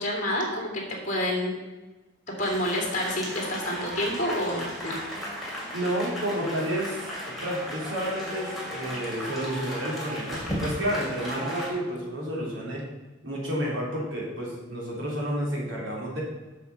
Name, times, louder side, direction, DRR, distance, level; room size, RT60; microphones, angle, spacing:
voice 1, 0.0-1.6 2.4-5.0, left 1 dB, 40° left, -1 dB, 2.5 m, -28 dB
sound 1, 2.4-11.7, equal, ahead, 2.6 m, -35 dB
voice 2, 5.7-12.8 13.2-16.2, equal, 75° right, -4 dB, 3.2 m, -30 dB
7.6 x 6.8 x 5.4 m, 1.1 s
head